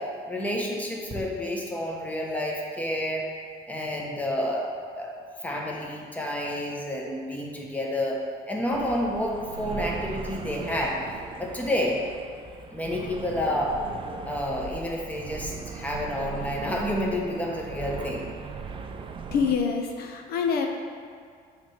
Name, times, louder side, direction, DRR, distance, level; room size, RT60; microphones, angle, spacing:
voice 1, 0.3-3.2 3.7-5.1 5.4-8.2 8.5-11.0 11.4-12.0 12.7-13.7 14.3-18.3, left 1 dB, 10° left, -2 dB, 1.1 m, -29 dB
sound 1, 8.7-19.6, right 5 dB, 30° right, 0.4 m, -38 dB
voice 2, 19.3-20.7, left 6 dB, 65° left, 3 dB, 0.6 m, -26 dB
7.5 x 3.3 x 4.9 m, 2.2 s
cardioid pair, 110°, 17 cm